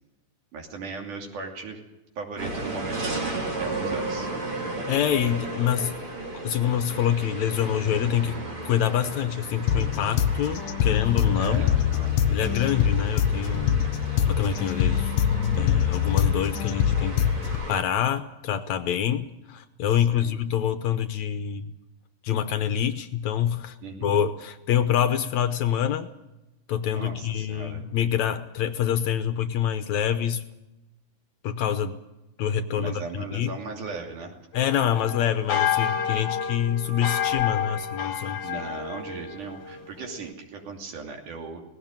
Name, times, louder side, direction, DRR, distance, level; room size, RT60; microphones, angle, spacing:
voice 1, 0.5-1.8 2.2-4.3 11.4-12.7 20.1-20.4 23.8-24.2 26.9-27.8 32.8-34.4 38.4-41.6, right 4 dB, 70° right, 2 dB, 4.3 m, -38 dB
sound 1, 2.4-17.8, right 2 dB, 40° right, 2.9 m, -35 dB
voice 2, 4.9-5.9 6.4-11.7 12.3-13.8 14.3-15.1 15.6-21.7 22.2-23.8 24.0-26.1 26.7-30.4 31.4-32.0 32.4-33.5 34.5-38.4, left 9 dB, 70° left, 10 dB, 2.0 m, -26 dB
sound 2, 9.7-17.7, left 9 dB, 90° left, 2.7 m, -24 dB
sound 3, 34.5-40.3, left 9 dB, 55° left, 2.0 m, -30 dB
19.0 x 16.5 x 9.0 m, 0.97 s
omnidirectional pair, 3.7 m